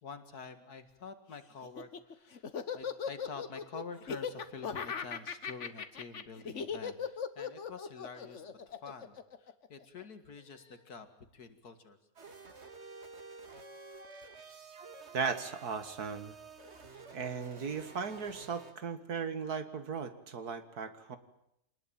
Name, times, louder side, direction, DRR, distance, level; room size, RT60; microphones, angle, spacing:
voice 1, 0.0-2.4 2.7-11.1 11.3-12.0 16.9-17.0, left 5 dB, 85° left, 9 dB, 2.5 m, -47 dB
Laughter, 1.6-10.0, left 6 dB, 55° left, 1.5 m, -38 dB
sound 1, 12.2-18.7, right 4 dB, 45° right, 2.3 m, -51 dB
voice 2, 15.1-16.3 17.1-21.2, right 5 dB, 85° right, 10 dB, 2.3 m, -37 dB
26.0 x 19.5 x 9.0 m, 0.79 s
omnidirectional pair, 1.6 m